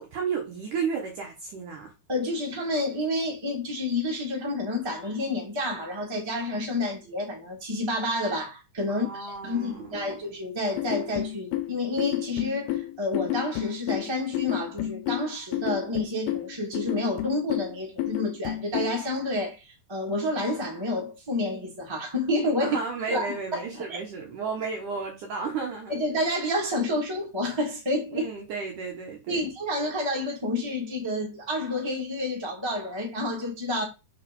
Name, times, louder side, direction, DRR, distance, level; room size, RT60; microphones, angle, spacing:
voice 1, 0.0-1.9 8.9-10.2 22.6-26.0 28.1-29.5, right 5 dB, 65° right, 2.2 m, -33 dB
voice 2, 2.1-22.8 23.1-24.0 25.9-28.3 29.3-33.8, left 1 dB, 10° right, 1.3 m, -29 dB
sound 1, 10.8-19.0, left 14 dB, 75° left, 2.5 m, -31 dB
7.1 x 3.9 x 5.4 m
omnidirectional pair, 5.0 m